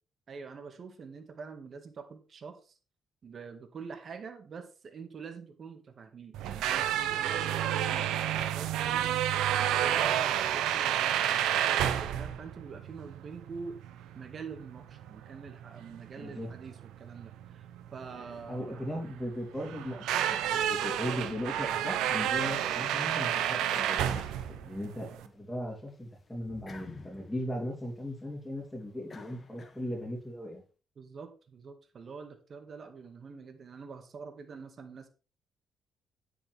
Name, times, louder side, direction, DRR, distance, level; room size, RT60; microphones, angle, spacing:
voice 1, 0.3-2.8 3.2-9.1 9.5-13.7 14.1-17.6 17.9-18.8 31.0-35.1, right 5 dB, 50° right, 7 dB, 2.0 m, -45 dB
sound 1, 6.3-25.3, right 10 dB, 85° right, 0.9 m, -30 dB
voice 2, 16.2-16.5 18.5-30.6, equal, 10° left, -4 dB, 3.7 m, -38 dB
sound 2, 23.7-25.2 25.6-30.2, left 4 dB, 35° left, 2.3 m, -51 dB
9.7 x 8.5 x 3.6 m, 0.34 s
supercardioid pair, 70°, 0 cm